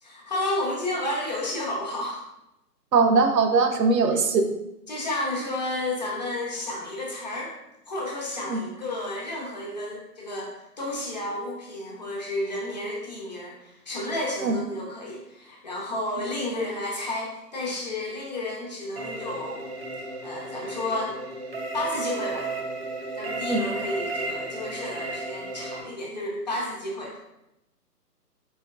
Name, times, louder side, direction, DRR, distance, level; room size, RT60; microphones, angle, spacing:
voice 1, 0.0-2.2 4.1-4.2 4.9-7.6 7.9-19.7 20.2-21.1 21.7-22.5 23.2-27.2, left 1 dB, 25° left, -3 dB, 0.7 m, -31 dB
voice 2, 2.9-4.5 8.5-8.6 14.4-14.5 23.5-23.6, right 4 dB, 80° right, 6 dB, 0.8 m, -20 dB
sound 1, 19.0-25.8, right 3 dB, 40° right, 0.6 m, -33 dB
4.4 x 4.3 x 2.3 m, 0.88 s
hypercardioid pair, 160°, 49 cm